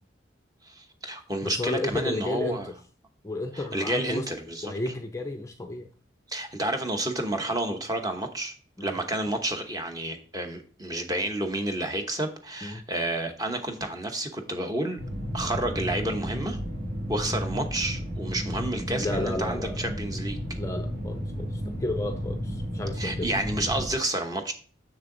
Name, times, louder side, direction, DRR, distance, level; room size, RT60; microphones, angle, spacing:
voice 1, 0.6-2.7 3.5-4.7 6.3-8.5 8.8-15.0 15.3-16.6 17.1-20.4 23.0-24.5, right 1 dB, 20° right, 1.0 m, -30 dB
voice 2, 1.4-2.7 3.2-4.3 4.6-5.9 8.8-9.0 12.6-12.8 17.2-17.4 18.9-19.9 20.5-23.3, left 2 dB, 15° left, 0.5 m, -33 dB
sound 1, 15.0-23.9, equal, 50° right, 2.1 m, -33 dB
6.9 x 6.5 x 3.9 m
head